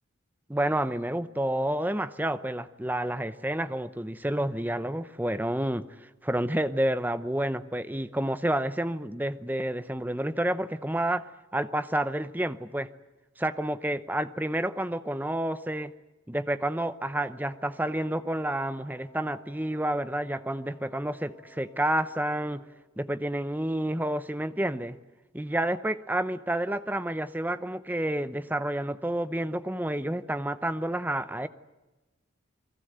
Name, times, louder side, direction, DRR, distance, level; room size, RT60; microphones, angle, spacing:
voice 1, 0.5-5.9 6.2-11.3 11.5-12.9 13.4-15.9 16.3-22.6 23.0-25.0 25.3-31.5, right 1 dB, 10° right, 13 dB, 0.7 m, -29 dB
Wind instrument woodwind instrument, 17.1-22.9, equal, 10° left, 3.9 m, -56 dB
29.0 x 20.5 x 8.0 m, 1.1 s
head